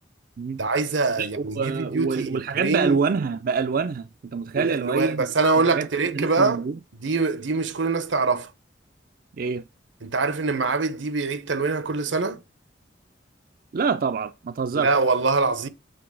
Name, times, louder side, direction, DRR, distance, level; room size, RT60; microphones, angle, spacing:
voice 1, 0.6-3.0 4.6-6.6 7.0-8.5 10.0-12.4 14.7-15.7, right 3 dB, 80° right, 1.0 m, -24 dB
voice 2, 1.2-5.3 5.6-5.9 6.1-6.8 9.4-9.7 13.7-14.9, right 5 dB, 50° right, 0.4 m, -26 dB
7.9 x 3.9 x 6.3 m
head